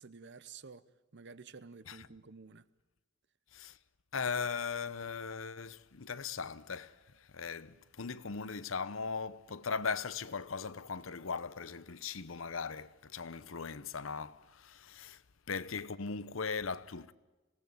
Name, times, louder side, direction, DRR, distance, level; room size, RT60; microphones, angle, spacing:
voice 1, 0.0-2.7, right 4 dB, 60° right, 0.9 m, -52 dB
voice 2, 4.1-15.2 15.5-17.1, left 5 dB, 80° left, 0.9 m, -39 dB
27.0 x 18.0 x 9.3 m
head